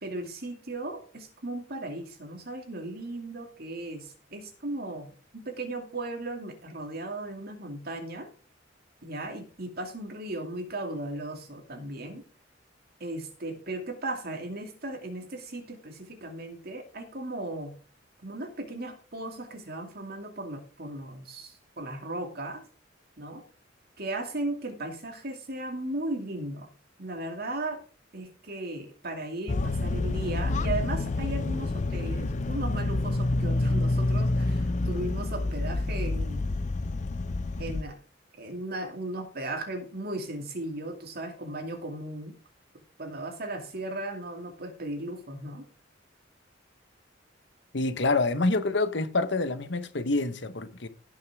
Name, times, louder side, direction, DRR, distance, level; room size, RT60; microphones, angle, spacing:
voice 1, 0.0-8.3 9.0-12.2 13.0-17.7 18.2-22.6 23.2-23.4 24.0-26.7 27.0-27.8 28.1-36.5 37.6-38.0 38.3-42.3 43.0-45.6, right 2 dB, 55° right, 2.5 m, -36 dB
sound 1, 29.5-37.8, left 2 dB, 40° left, 0.5 m, -28 dB
voice 2, 47.7-50.9, left 3 dB, 65° left, 1.1 m, -27 dB
16.5 x 6.4 x 3.6 m
head